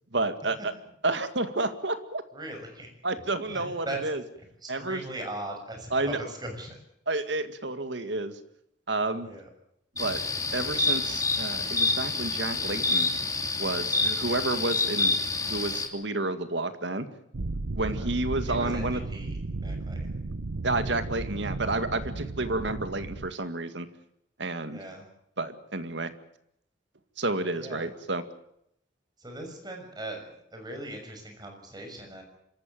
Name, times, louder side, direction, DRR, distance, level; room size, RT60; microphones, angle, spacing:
voice 1, 0.1-0.7 1.0-2.2 3.0-4.2 4.7-5.0 5.9-6.2 7.1-8.3 8.9-9.3 10.0-10.2 10.5-13.1 13.6-15.1 15.5-17.1 17.8-19.0 20.6-23.9 24.4-24.8 25.4-26.1 27.2-28.2, right 2 dB, 70° right, 10 dB, 2.0 m, -30 dB
voice 2, 2.3-2.9 3.5-4.0 4.4-6.8 9.2-9.5 18.0-18.1 18.4-20.2 24.7-25.1 27.5-27.9 29.2-32.2, right 1 dB, 20° right, 3 dB, 6.3 m, -39 dB
sound 1, 10.0-15.9, left 3 dB, 20° left, 2.6 m, -28 dB
sound 2, 17.3-23.3, right 2 dB, 90° right, 0.9 m, -34 dB
26.0 x 14.5 x 9.3 m, 0.76 s
head